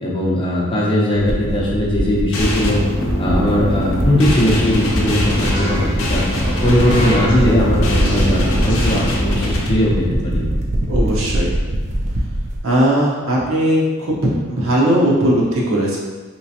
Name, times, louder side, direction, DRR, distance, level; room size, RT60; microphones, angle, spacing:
voice 1, 0.0-2.8 3.2-5.8 6.1-6.2 6.6-10.4, left 1 dB, 25° left, -4 dB, 0.5 m, -18 dB
sound 1, 1.1-12.6, right 1 dB, 35° right, 0.3 m, -23 dB
sound 2, 2.3-9.7, left 1 dB, 75° left, 0.6 m, -22 dB
sound 3, 5.4-8.0, right 1 dB, 90° right, 1.4 m, -29 dB
voice 2, 10.9-11.6 12.6-16.0, equal, 75° right, -4 dB, 0.8 m, -18 dB
3.2 x 3.0 x 2.7 m, 1.4 s
head